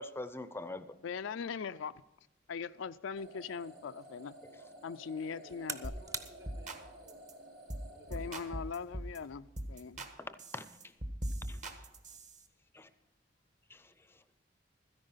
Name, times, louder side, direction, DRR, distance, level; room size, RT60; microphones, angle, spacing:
voice 1, 0.0-1.0 10.2-10.7 11.5-11.8 12.7-12.9 13.7-13.9, left 2 dB, 15° left, 0.6 m, -44 dB
voice 2, 1.0-1.9 2.5-4.4 4.8-5.9 8.1-10.1, left 6 dB, 85° left, 0.4 m, -40 dB
sound 1, 3.2-9.3, right 1 dB, 90° right, 4.6 m, -54 dB
sound 2, 4.0-9.2, right 3 dB, 20° right, 0.8 m, -49 dB
voice 3, 5.3-8.4, right 1 dB, 75° right, 3.9 m, -60 dB
sound 3, 5.8-6.0 6.2-6.8 7.1-7.3 7.7-9.2 9.6-10.1 10.4-12.4, right 1 dB, 40° right, 1.3 m, -40 dB
13.5 x 10.5 x 5.6 m
head